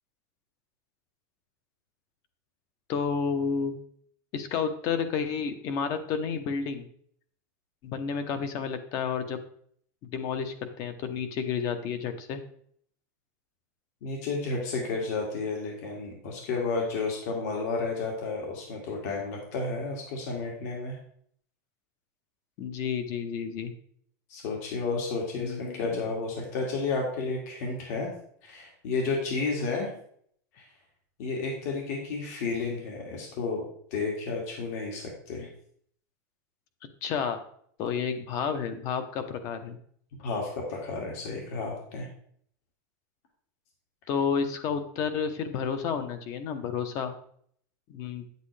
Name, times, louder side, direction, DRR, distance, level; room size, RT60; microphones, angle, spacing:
voice 1, 2.9-3.7 4.3-6.9 7.8-9.4 10.0-12.4 22.6-23.7 25.3-26.0 37.0-37.4 37.8-39.8 44.1-47.1 47.9-48.2, left 6 dB, 35° left, 9 dB, 0.9 m, -31 dB
voice 2, 14.0-21.0 24.3-28.1 28.4-29.9 30.5-30.6 31.2-33.6 33.9-35.5 40.2-42.1, left 3 dB, 60° left, -1 dB, 2.1 m, -32 dB
9.3 x 8.0 x 3.3 m, 0.63 s
supercardioid pair, 175°, 10 cm